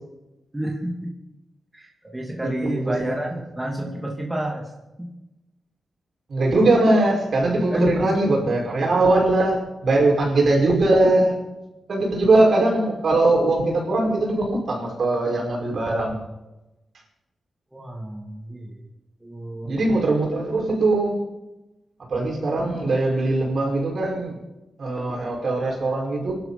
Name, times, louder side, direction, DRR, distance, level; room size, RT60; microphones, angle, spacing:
voice 1, 0.5-1.1 1.7-4.7 5.0-5.1 7.7-8.0 17.7-18.8 19.2-19.8, right 1 dB, 15° right, -1 dB, 2.7 m, -29 dB
voice 2, 2.6-3.1 6.3-11.4 11.9-16.2 19.6-21.2 22.1-24.4 24.8-26.3, right 2 dB, 65° right, -1 dB, 5.7 m, -21 dB
24.5 x 12.0 x 4.3 m, 0.99 s
cardioid pair, 85°, 0 cm